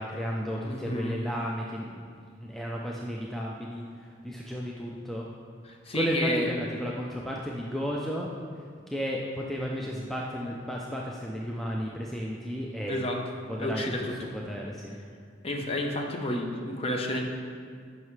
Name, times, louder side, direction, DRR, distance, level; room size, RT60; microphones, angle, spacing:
voice 1, 0.0-5.3 5.9-8.3 8.6-13.0 13.5-15.0, equal, ahead, -3 dB, 0.4 m, -33 dB
voice 2, 0.7-1.2 5.9-6.5 12.9-13.2 13.6-14.0 15.4-17.2, left 1 dB, 30° left, 1 dB, 0.7 m, -30 dB
10.5 x 5.5 x 3.2 m, 2.1 s
head